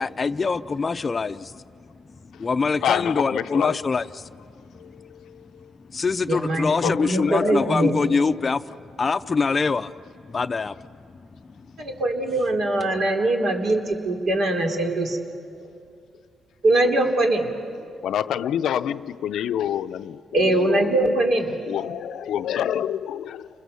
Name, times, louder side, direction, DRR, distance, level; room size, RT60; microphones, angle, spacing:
voice 1, 0.0-1.6 2.4-4.2 5.9-8.6 9.0-9.9 10.3-10.9 11.6-11.7, left 4 dB, 35° left, 0.5 m, -24 dB
voice 2, 2.8-3.8 4.8-5.7 6.6-7.7 17.8-21.1 21.7-23.5, left 10 dB, 80° left, 0.5 m, -28 dB
voice 3, 6.3-8.0 11.8-15.2 16.6-17.5 20.3-21.5, right 2 dB, 65° right, 3.2 m, -22 dB
30.0 x 22.0 x 7.0 m
cardioid pair, 90°, 0 cm